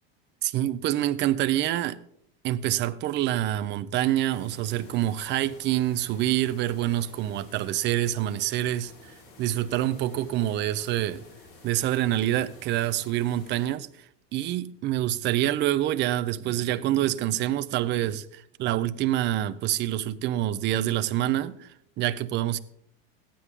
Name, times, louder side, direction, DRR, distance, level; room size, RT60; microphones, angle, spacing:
voice 1, 0.4-2.0 2.4-9.1 9.4-11.2 11.6-13.9 14.3-21.7 22.0-22.6, right 13 dB, 35° right, 0.6 m, -26 dB
sound 1, 4.3-13.7, left 3 dB, 45° left, 4.4 m, -51 dB
14.0 x 10.0 x 3.6 m
supercardioid pair, 130°, 31 cm